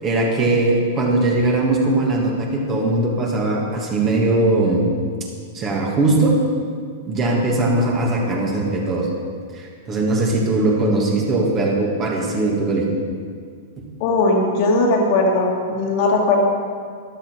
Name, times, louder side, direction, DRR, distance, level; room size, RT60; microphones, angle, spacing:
voice 1, 0.0-4.9 5.5-6.4 7.1-9.1 9.5-12.9, right 2 dB, 30° right, -1 dB, 2.6 m, -20 dB
voice 2, 14.0-16.4, left 2 dB, 45° left, 0 dB, 2.1 m, -18 dB
13.5 x 11.5 x 5.0 m, 2.1 s
figure-of-eight pair, 100°, 0 cm